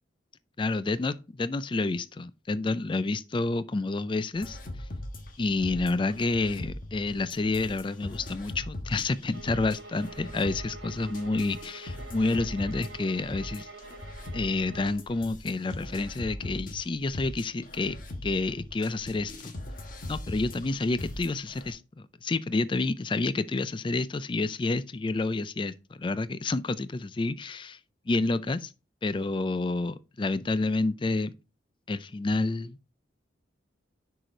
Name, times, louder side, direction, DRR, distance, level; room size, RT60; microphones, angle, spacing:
voice 1, 0.6-4.6 5.4-13.7 14.3-18.0 18.2-19.5 20.1-27.8 28.1-28.7 29.0-31.3 31.9-32.8, left 3 dB, 25° left, 0.3 m, -29 dB
sound 1, 4.4-21.7, left 1 dB, 45° left, 1.3 m, -40 dB
sound 2, 9.3-15.1, right 3 dB, 70° right, 1.7 m, -46 dB
6.4 x 4.8 x 4.3 m
head